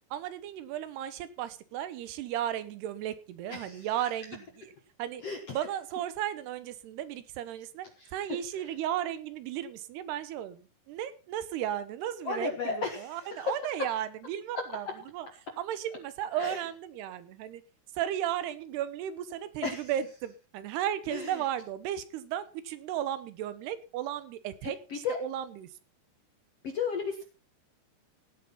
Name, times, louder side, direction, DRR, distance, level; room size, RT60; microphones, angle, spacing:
voice 1, 0.1-4.7 5.0-5.2 5.5-7.9 8.1-14.9 15.1-15.3 15.6-17.6 17.9-25.7, right 11 dB, 75° right, 14 dB, 3.0 m, -35 dB
voice 2, 3.5-3.9 5.2-5.4 8.0-8.1 12.3-13.5 16.4-16.6 19.6-19.9 21.1-21.4 24.6-25.2 26.6-27.2, left 5 dB, 60° left, 4 dB, 1.7 m, -34 dB
16.5 x 8.0 x 5.6 m, 0.35 s
omnidirectional pair, 4.9 m